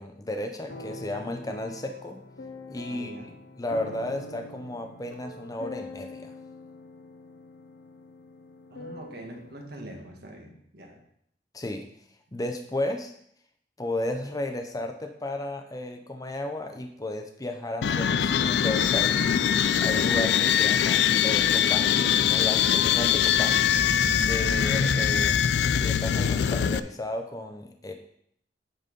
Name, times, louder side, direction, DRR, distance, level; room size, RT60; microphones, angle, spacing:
voice 1, 0.0-2.2 2.7-3.1 3.6-6.3 11.5-11.9 12.3-13.1 13.8-19.3 19.8-23.6 24.2-25.4 25.7-27.9, left 1 dB, 20° left, 4 dB, 0.7 m, -34 dB
sound 1, 0.7-9.7, left 2 dB, 90° left, 1.0 m, -44 dB
voice 2, 2.9-3.3 8.7-11.0, right 1 dB, 65° right, 2 dB, 1.5 m, -44 dB
sound 2, 17.8-26.8, left 8 dB, 65° left, 0.3 m, -23 dB
9.0 x 4.1 x 5.2 m, 0.68 s
head